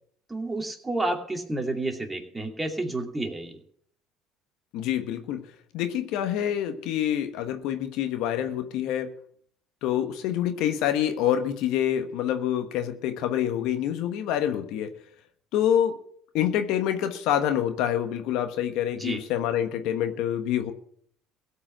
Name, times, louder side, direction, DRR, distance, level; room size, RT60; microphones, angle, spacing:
voice 1, 0.3-3.6 18.9-19.2, right 2 dB, 15° right, 3 dB, 2.5 m, -30 dB
voice 2, 4.7-5.4 5.7-9.1 9.8-14.9 15.5-16.0 16.3-20.7, left 10 dB, 70° left, 8 dB, 1.3 m, -26 dB
16.5 x 5.5 x 8.8 m, 0.64 s
supercardioid pair, 90°, 0 cm